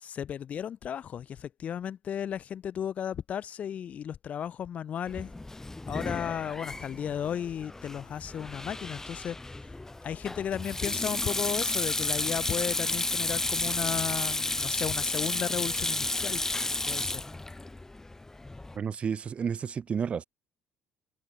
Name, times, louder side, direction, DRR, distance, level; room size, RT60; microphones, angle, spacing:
voice 1, 0.0-5.3 5.9-9.4 10.0-16.4 16.9-17.2, left 9 dB, 50° left, 0.4 m, -34 dB
Sink (filling or washing), 5.1-18.8, left 2 dB, 15° left, 0.9 m, -32 dB
voice 2, 18.7-20.2, right 7 dB, 40° right, 0.4 m, -31 dB
hypercardioid pair, 60°, 3 cm